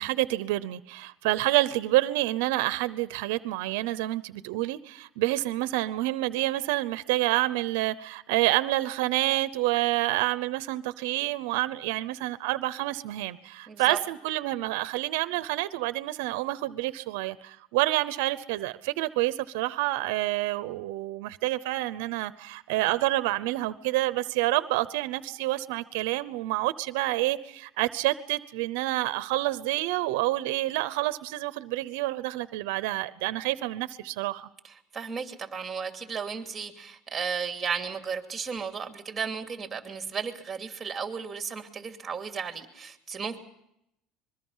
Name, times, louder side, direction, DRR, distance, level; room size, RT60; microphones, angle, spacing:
voice 1, 0.0-34.5, right 17 dB, 80° right, 0.8 m, -28 dB
voice 2, 13.7-14.0 34.6-43.4, right 6 dB, 15° right, 2.7 m, -34 dB
25.0 x 22.0 x 5.6 m
supercardioid pair, 130°, 0 cm